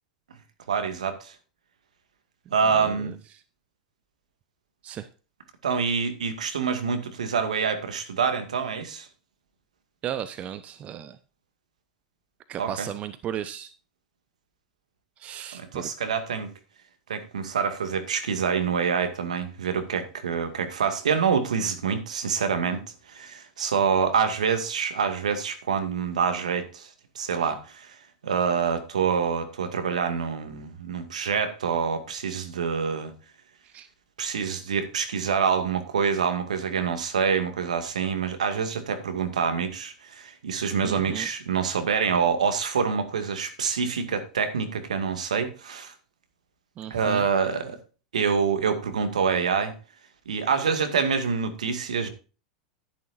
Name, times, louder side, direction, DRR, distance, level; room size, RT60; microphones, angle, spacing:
voice 1, 0.7-1.3 2.5-3.1 5.6-9.1 12.6-12.9 15.5-16.5 17.1-22.8 23.1-26.9 27.2-27.9 28.2-33.1 34.2-45.9 46.9-47.8 48.1-49.7 50.3-52.1, right 6 dB, 75° right, 2.1 m, -26 dB
voice 2, 2.7-3.1 4.8-5.1 10.0-11.2 12.5-13.7 15.2-15.9 33.7-33.9 40.8-41.3 46.8-47.3, right 10 dB, 35° right, 0.9 m, -35 dB
11.5 x 11.0 x 2.6 m
figure-of-eight pair, 90°, 4 cm